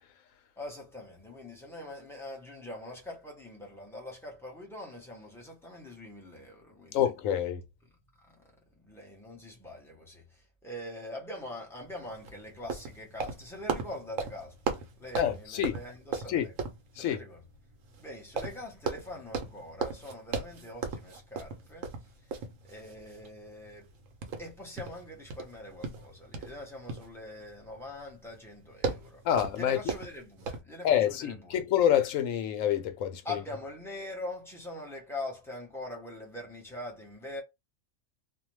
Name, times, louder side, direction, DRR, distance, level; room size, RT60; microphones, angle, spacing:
voice 1, 0.6-7.0 7.8-16.5 16.9-17.4 18.0-23.9 24.4-29.3 29.5-31.6 33.2-37.4, left 1 dB, 5° left, 0.6 m, -43 dB
voice 2, 6.9-7.6 15.2-15.7 16.3-16.5 17.0-17.2 29.2-29.8 30.8-33.2, left 10 dB, 80° left, 1.0 m, -27 dB
sound 1, 11.8-30.6, right 5 dB, 80° right, 1.0 m, -38 dB
2.6 x 2.1 x 3.0 m
omnidirectional pair, 1.3 m